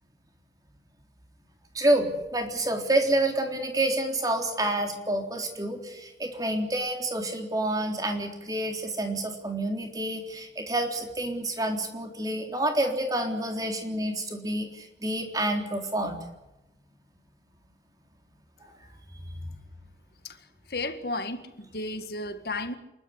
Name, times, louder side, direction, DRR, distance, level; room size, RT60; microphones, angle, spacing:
voice 1, 1.7-16.2 18.7-18.8 19.1-19.4, right 1 dB, 20° right, 3.6 m, -28 dB
voice 2, 20.2-22.8, left 2 dB, 60° left, 1.8 m, -34 dB
28.0 x 12.5 x 10.0 m
head